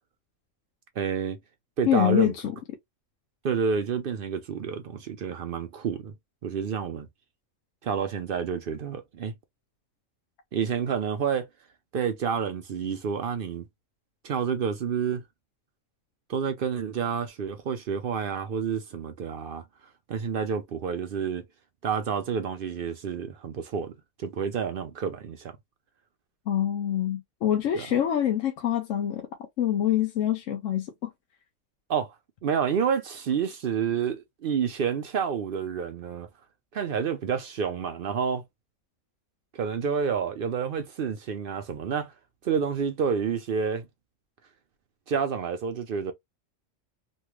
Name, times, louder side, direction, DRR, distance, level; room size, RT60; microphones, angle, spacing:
voice 1, 1.0-1.4 1.8-2.3 3.4-6.1 6.4-7.1 7.8-9.3 10.5-11.5 11.9-13.7 14.2-15.2 16.3-19.6 20.1-21.5 21.8-23.9 24.2-25.6 27.7-27.9 31.9-32.1 32.4-36.3 36.7-38.4 39.5-42.1 42.4-43.9 45.1-46.1, right 7 dB, 60° right, 0.6 m, -29 dB
voice 2, 1.9-2.3 26.5-29.3 29.6-31.1, left 11 dB, 70° left, 1.0 m, -25 dB
3.2 x 2.2 x 3.0 m
omnidirectional pair, 1.4 m